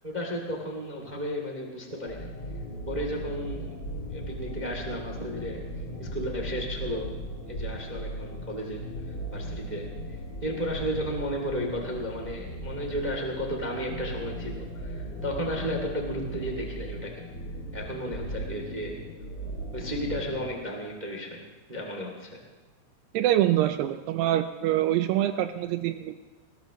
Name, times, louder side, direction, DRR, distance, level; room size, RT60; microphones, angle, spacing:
voice 1, 0.0-2.3 2.9-3.8 4.1-5.6 6.0-7.1 7.5-9.9 10.4-17.2 17.7-19.0 19.7-21.4 21.7-22.4, equal, 30° right, 0 dB, 0.7 m, -33 dB
sound 1, 2.1-20.5, right 1 dB, 30° left, 2.1 m, -37 dB
voice 2, 23.1-26.1, right 13 dB, 80° right, 9 dB, 2.4 m, -25 dB
20.5 x 20.5 x 3.1 m, 1.2 s
omnidirectional pair, 5.1 m